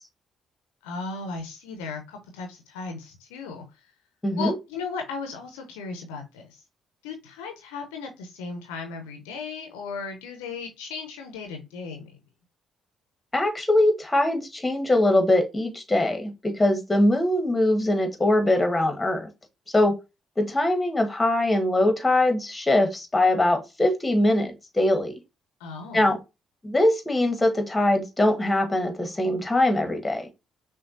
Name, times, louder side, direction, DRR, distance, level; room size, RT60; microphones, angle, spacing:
voice 1, 0.8-3.9 4.4-6.6 7.0-12.2 25.6-26.1, left 4 dB, 75° left, 0.7 m, -36 dB
voice 2, 4.2-4.5 13.3-19.3 19.7-20.0 20.4-25.1 25.9-26.2 26.6-30.3, left 1 dB, 15° left, 1.3 m, -22 dB
5.8 x 2.3 x 2.6 m
hypercardioid pair, 45°, 0 cm